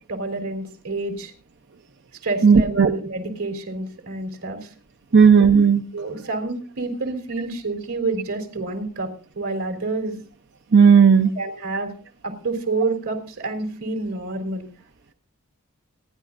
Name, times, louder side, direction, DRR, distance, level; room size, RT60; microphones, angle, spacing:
voice 1, 0.1-1.3 2.2-4.7 5.9-10.2 11.3-11.9 12.2-14.7, right 3 dB, 90° right, 4 dB, 3.5 m, -28 dB
voice 2, 2.4-2.9 5.1-5.8 10.7-11.3, right 6 dB, 55° right, 8 dB, 0.6 m, -13 dB
28.0 x 10.5 x 2.5 m, 0.38 s
head